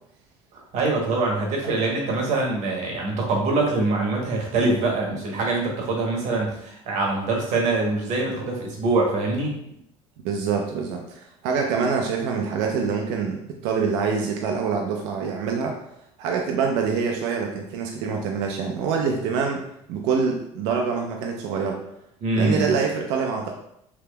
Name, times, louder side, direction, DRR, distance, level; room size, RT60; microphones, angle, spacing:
voice 1, 0.5-9.5 22.2-22.7, right 3 dB, 65° right, 0 dB, 0.9 m, -24 dB
voice 2, 10.2-15.8 16.2-19.6 19.9-21.8 22.4-23.5, right 5 dB, 80° right, 2 dB, 0.4 m, -25 dB
3.4 x 2.8 x 2.2 m, 0.76 s
supercardioid pair, 100°, 13 cm